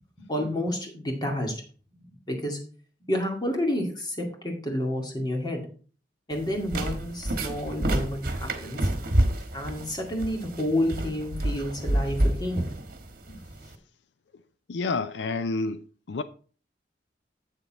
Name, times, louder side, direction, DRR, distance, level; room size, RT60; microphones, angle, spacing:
voice 1, 0.3-1.5 2.3-2.6 3.1-4.2 4.4-5.6 6.3-8.8 9.5-12.7, left 1 dB, 25° left, 2.1 m, -29 dB
sound 1, 6.3-13.7, right 1 dB, 55° right, 1.3 m, -29 dB
voice 2, 14.7-16.2, left 3 dB, 85° left, 0.5 m, -29 dB
8.2 x 6.9 x 4.1 m
head